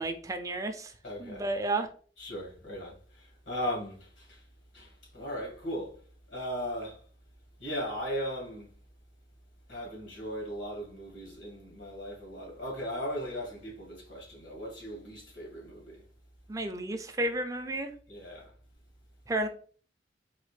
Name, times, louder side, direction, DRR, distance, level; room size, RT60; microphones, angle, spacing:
voice 1, 0.0-0.9 1.2-1.9 16.5-17.9 19.3-19.5, right 2 dB, 20° right, 0.4 m, -32 dB
voice 2, 1.0-1.5 2.2-4.4 4.7-6.0 6.3-7.0 7.6-8.7 9.7-16.0 18.1-18.5, equal, 75° left, 1.8 m, -38 dB
4.1 x 2.9 x 3.2 m
head